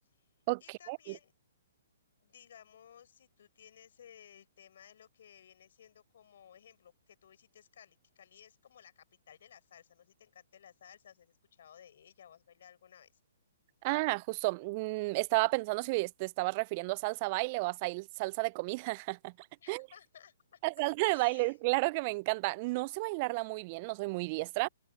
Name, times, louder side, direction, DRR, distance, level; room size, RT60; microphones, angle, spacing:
voice 1, 0.6-1.3 2.2-13.1 19.6-20.6 21.1-21.6, left 9 dB, 60° left, 6.9 m, -58 dB
voice 2, 13.8-19.3 19.7-19.9 20.6-24.7, right 25 dB, 40° right, 0.3 m, -32 dB
hypercardioid pair, 130°, 0 cm